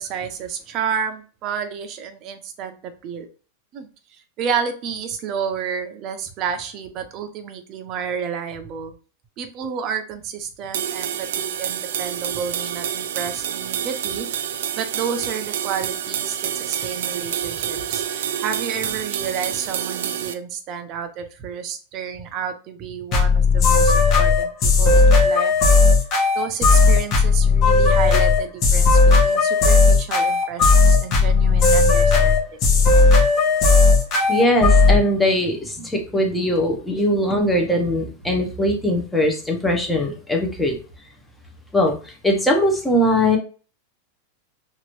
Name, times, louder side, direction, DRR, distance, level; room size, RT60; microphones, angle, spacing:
voice 1, 0.0-2.8 3.0-3.3 3.7-3.9 4.4-8.9 9.4-14.3 14.7-25.5 26.3-32.6 37.3-37.4, right 7 dB, 40° right, 7 dB, 0.6 m, -30 dB
sound 1, 10.7-20.3, right 9 dB, 80° right, 0.3 m, -28 dB
sound 2, 23.1-35.0, left 4 dB, 35° left, 1.0 m, -15 dB
voice 2, 34.3-40.8 41.7-43.4, left 1 dB, 5° left, 1 dB, 0.8 m, -20 dB
2.9 x 2.5 x 3.0 m, 0.37 s
supercardioid pair, 145°, 0 cm